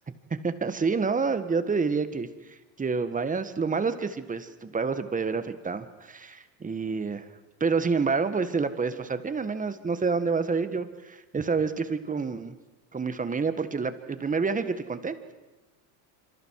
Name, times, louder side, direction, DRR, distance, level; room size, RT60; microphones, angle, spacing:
voice 1, 0.4-7.3 7.6-12.5 12.9-15.3, right 4 dB, 15° right, 11 dB, 1.6 m, -28 dB
26.5 x 26.0 x 4.8 m, 1.1 s
supercardioid pair, 115°, 48 cm